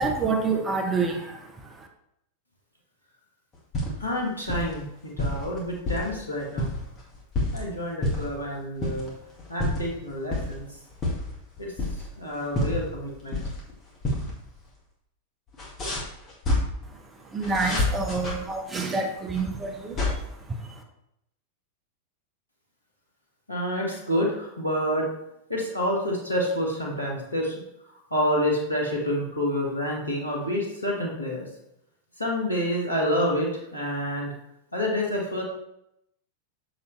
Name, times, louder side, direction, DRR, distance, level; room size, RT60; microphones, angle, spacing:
voice 1, 0.0-1.9 16.9-20.8, right 4 dB, 20° right, 3 dB, 0.9 m, -28 dB
sound 1, 3.5-4.1 4.4-4.8 5.2-6.1 6.4-7.6 8.0-8.4 8.8-9.1 9.4-9.9 10.3-10.5 10.9-12.2 12.5-13.7 14.0-14.3 14.6-14.7 15.5-16.6 17.4-18.3 19.3-20.1, left 2 dB, 30° left, 2.0 m, -28 dB
voice 2, 4.0-4.9 5.2-6.7 7.5-9.1 9.5-10.6 11.6-11.7 12.2-13.4 23.5-25.1 25.5-27.5 28.1-31.5 32.2-34.3 34.7-35.4, equal, 85° left, -2 dB, 1.5 m, -28 dB
6.8 x 4.8 x 3.3 m, 0.80 s
figure-of-eight pair, 90°, 0 cm